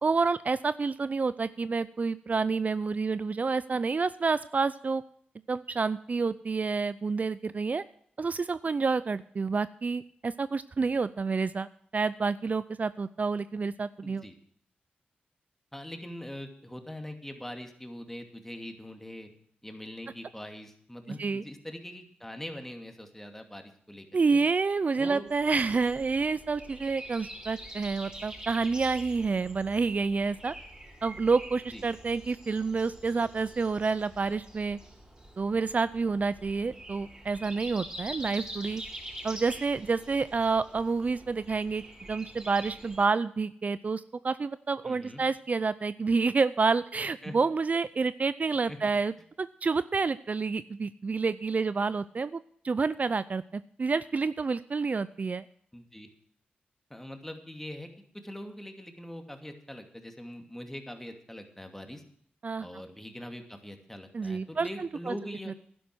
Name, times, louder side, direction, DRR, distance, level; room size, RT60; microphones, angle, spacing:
voice 1, 0.0-5.0 5.5-7.8 8.2-11.7 11.9-14.2 21.2-21.4 24.1-30.5 31.0-34.8 35.4-38.8 39.2-49.1 49.4-52.4 52.6-55.4 62.4-62.7 64.1-65.1, right 4 dB, 45° right, 15 dB, 0.5 m, -29 dB
voice 2, 14.0-14.4 15.7-19.3 19.6-24.4 25.0-25.3 31.7-31.8 44.8-45.2 47.2-47.4 48.6-48.8 55.7-56.1 56.9-57.9 58.1-62.0 62.6-65.6, left 1 dB, 10° left, 5 dB, 2.5 m, -42 dB
Breathing, 25.3-43.0, right 1 dB, 20° right, 6.1 m, -45 dB
11.0 x 11.0 x 6.2 m, 0.63 s
cardioid pair, 60°, 4 cm